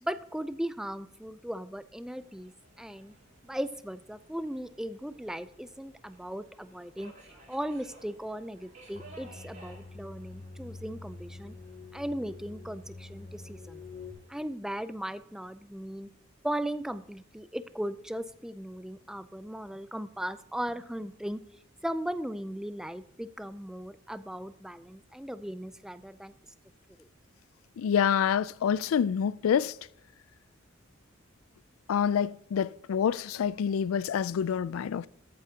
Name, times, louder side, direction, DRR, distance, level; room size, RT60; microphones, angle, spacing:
voice 1, 0.0-2.5 2.8-3.1 3.4-11.5 11.9-13.8 14.3-16.1 16.4-21.4 21.8-26.3 27.0-27.1, equal, 5° right, 0.4 m, -37 dB
Subway metro underground, 2.0-14.4, right 2 dB, 40° right, 4.3 m, -58 dB
sound 1, 8.9-14.1, left 3 dB, 30° left, 2.6 m, -46 dB
voice 2, 27.8-29.7 31.9-35.1, left 8 dB, 80° left, 0.3 m, -27 dB
13.5 x 8.6 x 2.8 m
head